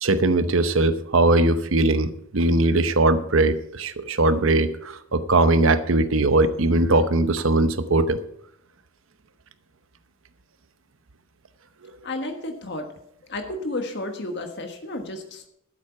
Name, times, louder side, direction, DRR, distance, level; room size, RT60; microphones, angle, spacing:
voice 1, 0.0-8.2, right 2 dB, 65° right, 12 dB, 0.9 m, -20 dB
voice 2, 12.0-15.5, left 2 dB, 55° left, 5 dB, 1.4 m, -32 dB
13.0 x 8.0 x 5.8 m, 0.75 s
head